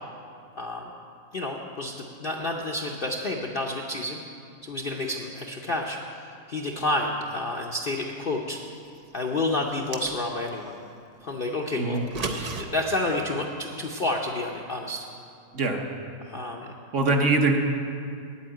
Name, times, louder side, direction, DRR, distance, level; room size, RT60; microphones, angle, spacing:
voice 1, 1.3-4.2 4.6-8.6 9.1-10.8 11.2-12.0 12.6-15.0 16.2-16.7, left 2 dB, 50° left, 0 dB, 0.6 m, -29 dB
sound 1, 9.7-10.6 11.9-12.6, right 3 dB, 70° right, 0.3 m, -33 dB
voice 2, 16.9-17.6, right 3 dB, 55° right, 2 dB, 1.1 m, -22 dB
8.5 x 8.5 x 8.8 m, 2.4 s
omnidirectional pair, 1.7 m